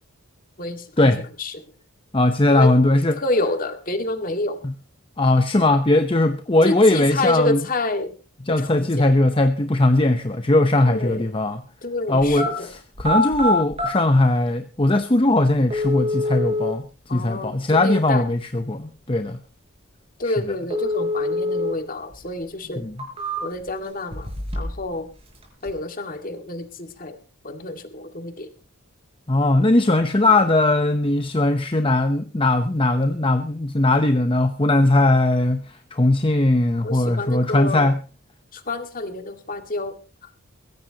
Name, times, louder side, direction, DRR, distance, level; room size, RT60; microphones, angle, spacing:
voice 1, 0.6-1.6 2.5-2.7 3.2-4.6 6.6-8.1 8.5-9.1 10.8-11.3 11.8-12.7 17.1-18.2 20.2-22.8 23.4-24.3 24.6-25.1 25.6-27.2 27.4-28.5 36.8-37.9 38.5-39.9 40.2-40.3, left 2 dB, 40° left, 6 dB, 2.1 m, -28 dB
voice 2, 2.1-3.2 4.6-4.7 5.2-7.6 8.5-11.6 12.1-16.8 17.1-19.4 22.8-22.9 29.3-38.0, left 2 dB, 25° left, 8 dB, 0.8 m, -19 dB
sound 1, 12.4-12.5 12.9-13.9 14.9-15.0 15.7-16.7 20.7-21.7 22.1-22.2 22.8-23.7 24.1-24.8 25.1-25.7, left 1 dB, 25° right, 5.1 m, -25 dB
22.0 x 16.0 x 2.9 m, 0.34 s
head